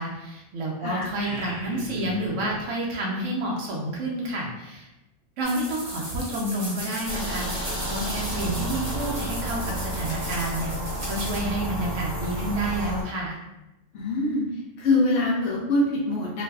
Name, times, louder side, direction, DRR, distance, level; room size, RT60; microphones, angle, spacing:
voice 1, 0.0-4.9 5.4-13.4, right 1 dB, 75° right, -3 dB, 0.9 m, -29 dB
sound 1, 1.0-2.6, left 1 dB, 45° left, 1.0 m, -38 dB
sound 2, 5.4-11.4, right 1 dB, 40° right, 0.8 m, -37 dB
sound 3, 7.1-13.0, right 1 dB, 15° left, 0.9 m, -31 dB
voice 2, 13.9-14.4 14.8-16.4, left 2 dB, 70° left, -4 dB, 0.8 m, -24 dB
2.6 x 2.3 x 2.2 m, 0.97 s
omnidirectional pair, 1.3 m